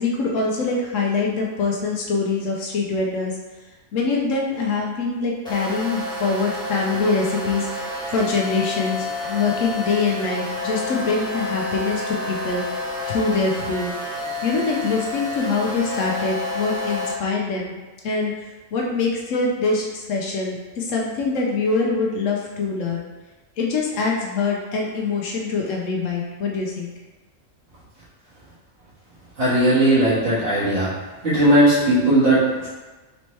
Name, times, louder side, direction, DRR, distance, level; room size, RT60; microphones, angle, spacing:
voice 1, 0.0-3.3 3.9-13.9 14.4-17.8 18.0-23.1 23.6-26.9, left 4 dB, 75° left, -1 dB, 1.0 m, -24 dB
sound 1, 5.4-17.1, left 2 dB, 5° left, 0.6 m, -29 dB
voice 2, 29.4-30.9 31.2-32.7, right 1 dB, 55° right, -13 dB, 1.9 m, -17 dB
4.3 x 2.9 x 3.1 m, 1.2 s
omnidirectional pair, 1.4 m